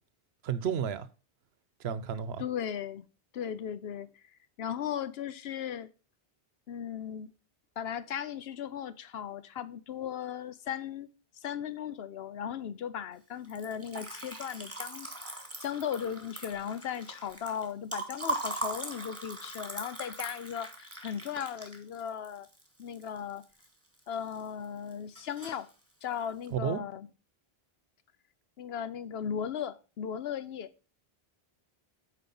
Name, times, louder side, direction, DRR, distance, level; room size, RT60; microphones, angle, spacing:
voice 1, 0.4-1.1 1.8-2.4 26.5-26.8, right 8 dB, 85° right, 1.0 m, -32 dB
voice 2, 2.4-3.1 3.3-4.1 4.6-5.9 6.7-7.3 7.8-11.1 11.4-22.5 22.8-23.4 24.1-25.7 26.0-27.1 28.6-30.7, left 8 dB, 85° left, 0.9 m, -37 dB
Liquid, 13.4-23.7 24.0-24.7 24.9-25.7, right 2 dB, 15° right, 1.7 m, -40 dB
8.2 x 4.9 x 5.3 m
omnidirectional pair, 1.0 m